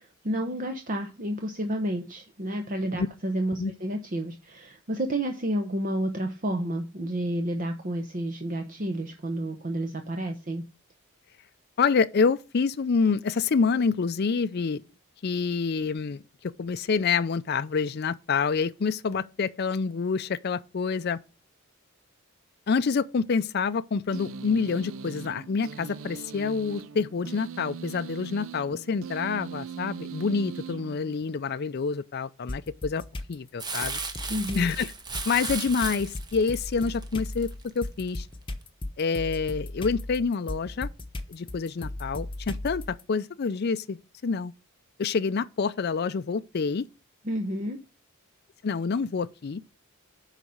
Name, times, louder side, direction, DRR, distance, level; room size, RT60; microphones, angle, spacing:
voice 1, 0.0-10.6 34.3-34.7 47.2-47.8, right 1 dB, 40° right, 0.9 m, -30 dB
voice 2, 11.8-14.8 15.2-21.2 22.7-33.0 33.3-34.0 34.5-34.9 35.3-37.5 37.7-38.3 39.0-40.9 41.3-44.5 45.0-46.9 48.6-49.6, left 5 dB, 50° left, 0.4 m, -27 dB
sound 1, 24.1-31.5, right 6 dB, 70° right, 0.5 m, -40 dB
sound 2, 32.5-33.3 33.8-43.0, left 1 dB, 25° left, 1.0 m, -37 dB
Crumpling crinkling, 33.6-38.1 38.6-38.7, right 4 dB, 20° right, 1.0 m, -36 dB
9.9 x 4.1 x 6.4 m
head